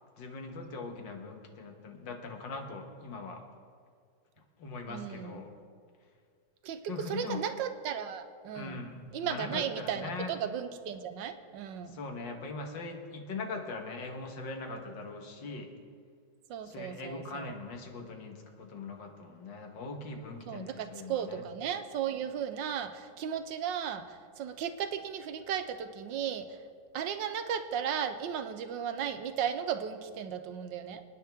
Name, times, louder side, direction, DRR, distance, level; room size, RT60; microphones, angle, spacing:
voice 1, 0.2-3.4 4.6-5.5 6.9-7.4 8.5-10.4 11.9-15.7 16.6-21.5, left 3 dB, 85° left, 4 dB, 2.1 m, -41 dB
voice 2, 4.9-5.5 6.6-8.8 9.1-12.0 16.5-17.6 20.5-26.6 26.9-31.0, right 8 dB, 85° right, 9 dB, 1.5 m, -35 dB
26.0 x 9.5 x 3.5 m, 2.1 s
omnidirectional pair, 2.0 m